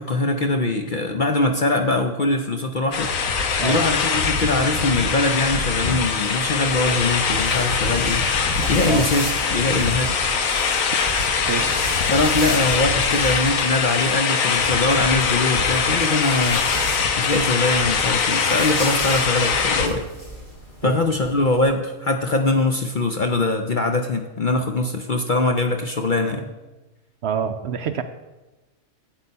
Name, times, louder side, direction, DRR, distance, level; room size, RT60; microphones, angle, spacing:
voice 1, 0.0-3.1 3.6-8.2 8.7-10.2 12.1-16.7 17.2-20.0 20.8-26.5, left 2 dB, 50° left, 5 dB, 0.6 m, -22 dB
sound 1, 2.9-19.9, left 5 dB, 75° left, 1.3 m, -22 dB
sound 2, 6.1-14.2 15.2-21.6, equal, 35° left, 3.7 m, -35 dB
voice 2, 27.2-28.0, right 8 dB, 65° right, 9 dB, 0.7 m, -26 dB
8.3 x 8.0 x 5.3 m, 1.1 s
omnidirectional pair, 1.4 m